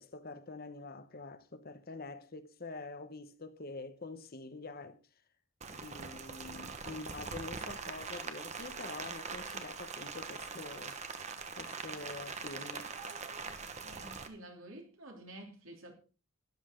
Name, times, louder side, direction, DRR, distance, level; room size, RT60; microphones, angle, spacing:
voice 1, 0.0-5.0 5.7-11.0 11.6-12.9, left 3 dB, 45° left, 1.0 m, -46 dB
Rain, 5.6-14.3, right 5 dB, 35° right, 1.2 m, -43 dB
voice 2, 13.8-15.9, right 1 dB, 65° right, 3.2 m, -50 dB
13.0 x 10.5 x 3.8 m
head